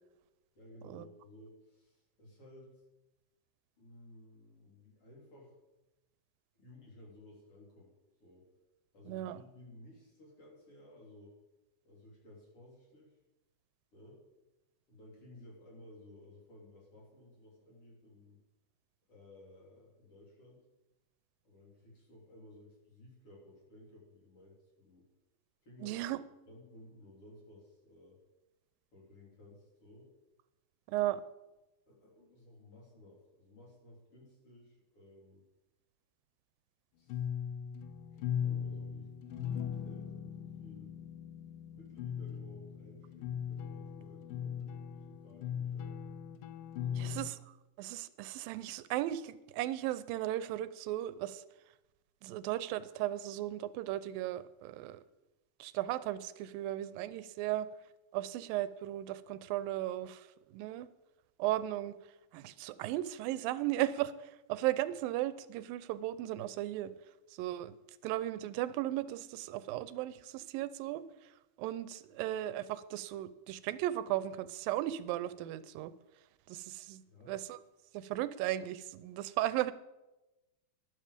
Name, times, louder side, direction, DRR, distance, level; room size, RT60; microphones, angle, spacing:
voice 1, 0.6-2.8 3.8-5.5 6.5-7.9 8.2-8.5 8.9-11.4 11.8-13.2 13.9-14.2 14.9-18.4 19.1-20.6 21.4-25.1 25.6-26.1 26.5-28.2 28.9-30.1 31.9-35.4 36.9-37.3 38.1-41.0 41.7-46.0 46.8-47.2 77.0-77.4, left 1 dB, 40° left, -3 dB, 4.2 m, -57 dB
voice 2, 9.1-9.4 25.8-26.2 30.9-31.2 47.0-47.4 47.8-51.4 52.2-55.0 55.6-57.7 58.1-60.9 61.4-61.9 62.3-66.9 67.3-67.7 68.0-71.0 71.6-75.9 76.5-77.0 77.3-77.6 77.9-79.7, right 14 dB, 85° right, 15 dB, 2.4 m, -36 dB
sound 1, 37.1-47.3, left 8 dB, 80° left, 2.4 m, -39 dB
12.0 x 11.5 x 5.1 m, 1.0 s
omnidirectional pair, 4.0 m